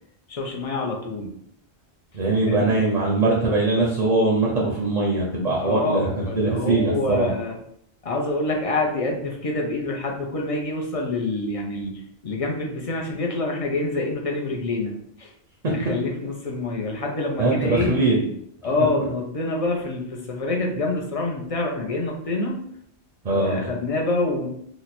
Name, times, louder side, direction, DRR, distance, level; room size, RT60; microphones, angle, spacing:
voice 1, 0.3-1.3 2.4-2.8 5.6-7.6 8.0-15.3 15.6-17.9 18.6-22.6 23.3-24.5, left 2 dB, 40° left, 0 dB, 0.5 m, -26 dB
voice 2, 2.1-7.3 15.6-15.7 17.4-18.3 23.2-23.7, right 2 dB, 45° right, -2 dB, 0.7 m, -21 dB
3.0 x 2.1 x 4.1 m, 0.70 s
omnidirectional pair, 1.1 m